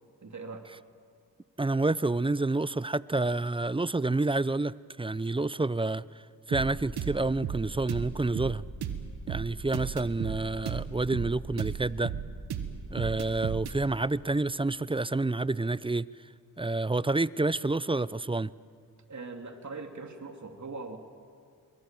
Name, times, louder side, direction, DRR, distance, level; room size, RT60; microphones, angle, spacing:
voice 1, 0.2-0.7 19.1-21.0, right 3 dB, 45° right, 2.9 m, -41 dB
voice 2, 1.6-6.0 6.5-8.6 9.3-12.1 12.9-16.1 16.6-18.5, right 2 dB, 15° right, 0.5 m, -28 dB
sound 1, 6.5-13.8, right 8 dB, 90° right, 1.5 m, -35 dB
27.5 x 22.5 x 7.6 m
supercardioid pair, 45°, 38 cm